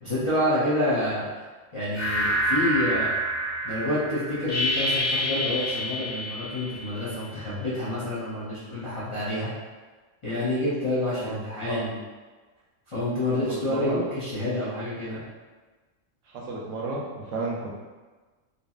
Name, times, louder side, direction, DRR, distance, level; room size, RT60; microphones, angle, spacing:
voice 1, 0.0-1.3 1.7-3.1 3.6-9.5 10.2-12.0 12.9-15.2, left 1 dB, 35° left, -12 dB, 0.5 m, -28 dB
sound 1, 1.9-7.4, equal, 50° left, 0.8 m, -28 dB
voice 2, 11.1-11.8 13.5-14.0 16.3-17.7, right 3 dB, 75° right, -3 dB, 0.9 m, -33 dB
2.8 x 2.6 x 2.3 m, 1.3 s
omnidirectional pair, 1.4 m